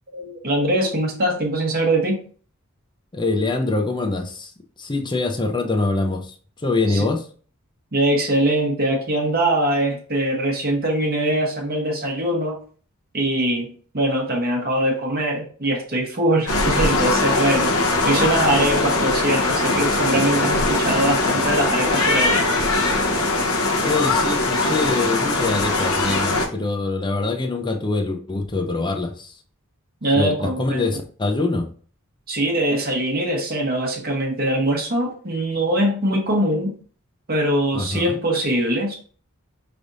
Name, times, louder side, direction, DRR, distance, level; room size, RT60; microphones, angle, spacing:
voice 1, 0.1-2.2 6.9-7.0 7.9-12.6 13.1-17.7 18.0-22.5 30.0-30.8 32.3-36.7 37.3-39.0, right 1 dB, 45° right, 0 dB, 1.0 m, -22 dB
voice 2, 3.1-4.5 4.8-7.3 23.8-29.4 30.2-31.7 37.7-38.2, left 3 dB, 20° left, 5 dB, 0.6 m, -24 dB
sound 1, 16.5-26.5, left 2 dB, 75° left, 0.9 m, -21 dB
4.9 x 3.4 x 2.6 m, 0.43 s
head